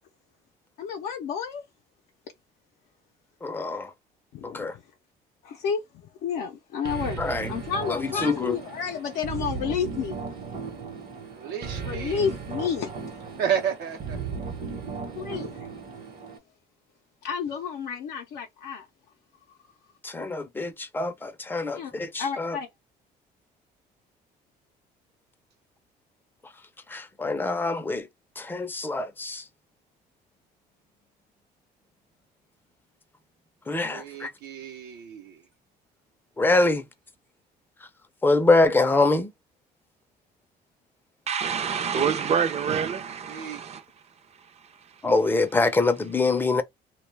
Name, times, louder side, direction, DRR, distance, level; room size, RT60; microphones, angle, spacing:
voice 1, 0.8-1.6 4.3-4.8 5.4-5.8 6.2-7.2 7.5-10.2 11.8-12.9 15.2-15.6 17.2-18.9 21.7-21.9 22.2-22.7, left 7 dB, 75° left, 0.5 m, -30 dB
voice 2, 3.4-3.9 4.4-4.7 7.2-7.5 7.9-8.6 20.0-22.6 26.9-28.1 28.4-29.4 33.7-34.3 36.4-36.9 38.2-39.3 45.0-46.6, left 3 dB, 10° left, 0.5 m, -24 dB
sound 1, 6.8-16.4, right 5 dB, 55° right, 0.9 m, -36 dB
voice 3, 11.3-12.3 13.4-14.2 15.2-15.4 33.8-35.4 43.3-43.6, right 8 dB, 80° right, 0.7 m, -32 dB
voice 4, 41.3-43.9 44.4-45.1, right 7 dB, 40° right, 0.5 m, -28 dB
2.2 x 2.1 x 3.2 m
cardioid pair, 110°, 17 cm